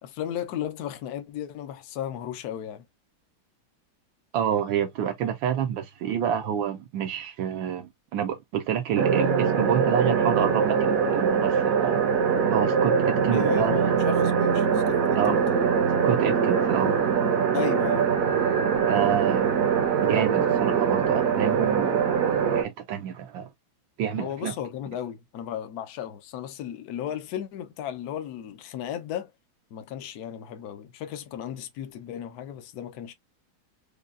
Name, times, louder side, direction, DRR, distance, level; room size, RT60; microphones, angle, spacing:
voice 1, 0.0-2.8 13.3-15.7 17.5-18.7 24.1-29.3 29.7-33.1, left 10 dB, 65° left, 1.0 m, -35 dB
voice 2, 4.3-12.0 12.5-14.0 15.2-15.3 16.0-16.9 18.8-19.5 20.0-22.1 22.5-23.5 24.0-24.5, right 9 dB, 75° right, 1.3 m, -28 dB
sound 1, 9.0-22.6, right 6 dB, 60° right, 0.9 m, -23 dB
5.2 x 2.3 x 2.4 m
omnidirectional pair, 2.2 m